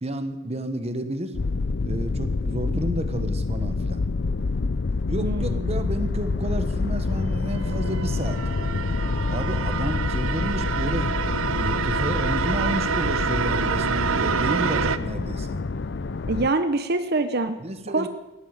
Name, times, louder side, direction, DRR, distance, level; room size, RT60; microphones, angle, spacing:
voice 1, 0.0-1.3 1.8-4.0 5.1-8.4 9.3-15.6 17.6-18.1, right 1 dB, 30° right, 9 dB, 1.2 m, -31 dB
sound 1, 1.3-16.5, left 3 dB, 55° left, 0.6 m, -27 dB
voice 2, 5.2-5.7 16.3-17.6 17.9-18.1, right 2 dB, 50° right, 9 dB, 0.9 m, -25 dB
sound 2, 7.3-15.0, right 6 dB, 85° right, 0.7 m, -27 dB
16.5 x 11.5 x 7.2 m, 1.0 s
head